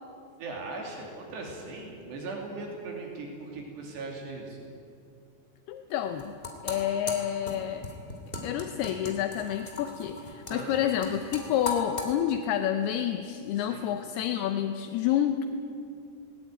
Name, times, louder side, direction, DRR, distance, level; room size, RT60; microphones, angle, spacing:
voice 1, 0.4-4.6 8.1-8.2 10.5-10.8 13.5-13.9, right 3 dB, 70° right, 0 dB, 4.8 m, -39 dB
voice 2, 5.7-6.3 6.6-7.9 8.4-15.5, left 10 dB, 75° left, 8 dB, 2.5 m, -29 dB
sound 1, 6.0-12.1, left 3 dB, 15° left, 1.9 m, -38 dB
20.0 x 19.5 x 9.2 m, 2.5 s
omnidirectional pair, 5.2 m